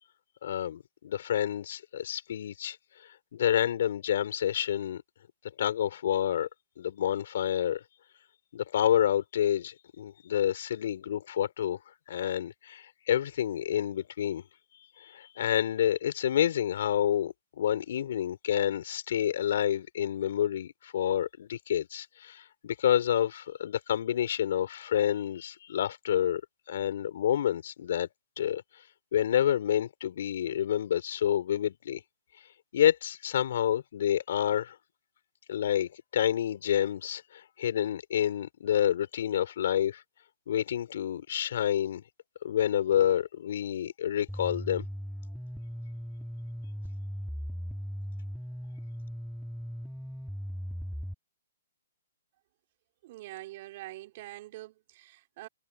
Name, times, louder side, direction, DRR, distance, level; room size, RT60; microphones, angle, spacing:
voice 1, 0.4-5.0 5.6-6.5 6.8-7.8 8.5-11.8 12.1-14.4 15.0-26.4 26.7-28.1 28.4-28.6 29.1-32.0 32.7-34.8 35.5-40.0 40.5-42.0 42.4-44.8, left 10 dB, 60° left, 4.0 m, -28 dB
sound 1, 44.3-51.1, equal, ahead, 3.5 m, -38 dB
voice 2, 53.0-55.5, right 17 dB, 40° right, 4.2 m, -45 dB
hypercardioid pair, 150°, 0 cm